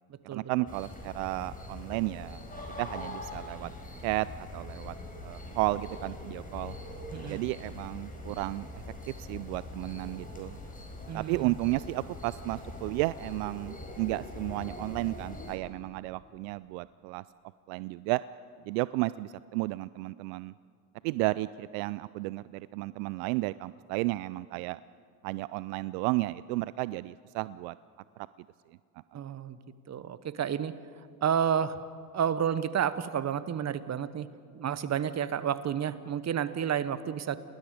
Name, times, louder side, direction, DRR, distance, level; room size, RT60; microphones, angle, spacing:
voice 1, 0.3-2.4 2.8-3.7 4.0-4.9 5.2-6.8 7.3-10.5 11.1-17.2 17.7-18.2 18.7-20.5 21.0-24.8 25.2-27.8 28.2-28.3 29.1-29.2, right 20 dB, 65° right, 18 dB, 0.5 m, -33 dB
sound 1, 0.7-15.6, left 2 dB, 15° left, 4.9 m, -43 dB
voice 2, 7.1-7.4 11.1-11.5 29.1-29.6 29.9-30.7 31.2-31.8 32.1-34.3 34.5-37.4, right 8 dB, 35° right, 15 dB, 1.1 m, -30 dB
30.0 x 20.0 x 5.0 m, 2.2 s
hypercardioid pair, 70°, 47 cm